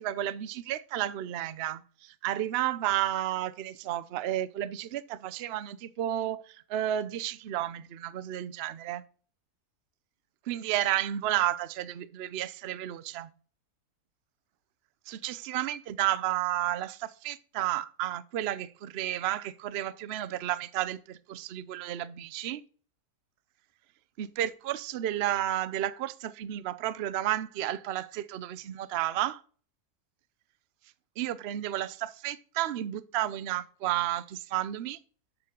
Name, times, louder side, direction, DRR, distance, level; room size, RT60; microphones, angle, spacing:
voice 1, 0.0-9.0 10.5-13.3 15.1-22.6 24.2-29.4 31.2-35.0, right 13 dB, 65° right, 0.6 m, -32 dB
6.9 x 6.8 x 5.2 m
omnidirectional pair, 1.7 m